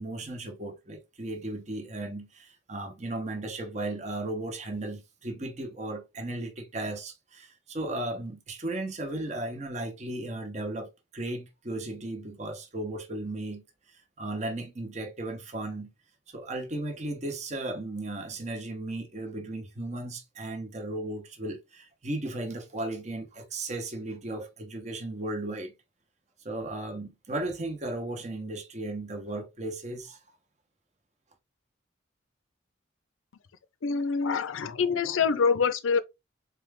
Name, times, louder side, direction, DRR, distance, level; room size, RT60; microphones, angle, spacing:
voice 1, 0.0-15.9 16.3-25.7 26.4-30.2, right 2 dB, 35° right, 0.9 m, -35 dB
voice 2, 33.8-36.0, left 5 dB, 80° left, 0.5 m, -25 dB
4.2 x 2.3 x 3.3 m
head